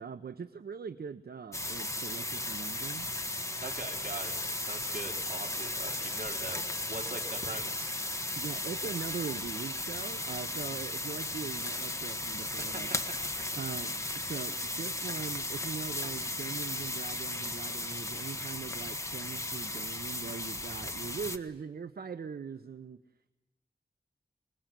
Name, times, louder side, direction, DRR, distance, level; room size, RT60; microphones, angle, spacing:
voice 1, 0.0-3.1 8.4-13.0 13.6-23.0, right 6 dB, 80° right, 10 dB, 0.8 m, -41 dB
sound 1, 1.5-21.4, left 1 dB, 20° left, 1.6 m, -36 dB
voice 2, 3.6-7.9 12.6-13.5 13.8-14.0, right 3 dB, 60° right, 2 dB, 4.0 m, -43 dB
28.0 x 20.5 x 7.6 m, 1.1 s
wide cardioid pair, 95°, 16 cm